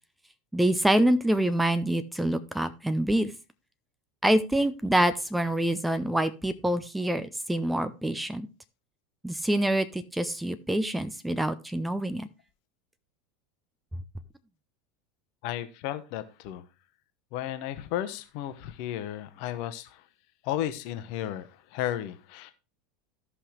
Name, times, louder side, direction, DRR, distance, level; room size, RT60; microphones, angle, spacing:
voice 1, 0.5-3.3 4.2-8.5 9.2-12.3, right 1 dB, 5° right, 0.7 m, -26 dB
voice 2, 15.4-16.6 17.3-20.0 20.4-22.5, left 12 dB, 50° left, 1.0 m, -34 dB
14.0 x 5.7 x 3.2 m
figure-of-eight pair, 80°, 0 cm